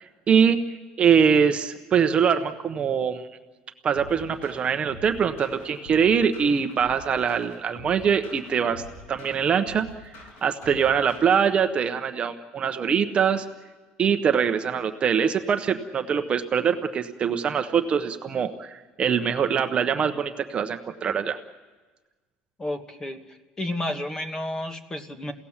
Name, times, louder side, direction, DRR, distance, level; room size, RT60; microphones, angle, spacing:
voice 1, 0.3-0.6 1.0-3.3 3.8-8.8 9.1-9.9 10.4-13.5 14.0-21.4, right 7 dB, 30° right, 7 dB, 0.9 m, -23 dB
sound 1, 3.9-11.6, left 1 dB, 60° left, 6.8 m, -46 dB
voice 2, 22.6-25.3, left 1 dB, 15° left, 7 dB, 1.4 m, -31 dB
29.5 x 17.0 x 7.3 m, 1.3 s
cardioid pair, 150°, 4 cm